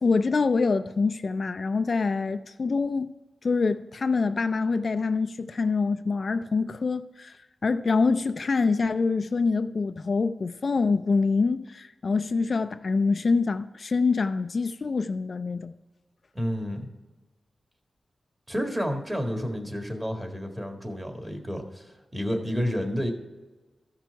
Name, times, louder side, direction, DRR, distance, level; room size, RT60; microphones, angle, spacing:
voice 1, 0.0-3.1 3.4-7.4 7.6-15.7, left 4 dB, 55° left, 0.3 m, -25 dB
voice 2, 16.3-16.9 18.5-23.1, equal, 20° right, 1.8 m, -30 dB
14.0 x 6.0 x 4.6 m
wide cardioid pair, 85°, 0 cm